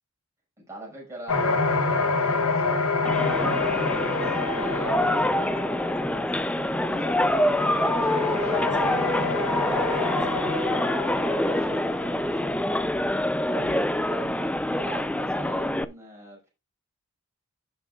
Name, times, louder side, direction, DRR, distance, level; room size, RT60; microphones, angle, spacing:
voice 1, 0.7-2.8 4.1-6.3 6.7-7.4 8.2-8.6 11.4-11.9 12.2-12.6 13.4-16.5, right 1 dB, 15° right, 5.7 m, -42 dB
sound 1, 1.3-12.7, left 3 dB, 85° left, 1.3 m, -28 dB
sound 2, 3.0-15.8, left 1 dB, 5° left, 0.4 m, -26 dB
voice 2, 7.8-9.0 9.7-10.4, right 1 dB, 35° right, 3.6 m, -39 dB
15.5 x 6.7 x 2.4 m
head